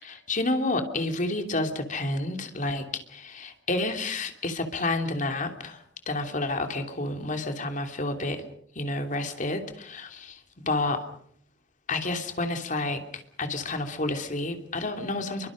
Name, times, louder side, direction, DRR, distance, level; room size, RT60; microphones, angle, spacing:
voice 1, 0.0-8.4 8.7-10.4 10.7-11.0 11.9-13.0 13.4-15.5, left 2 dB, 45° left, 5 dB, 3.0 m, -30 dB
29.5 x 24.0 x 5.1 m, 0.65 s
head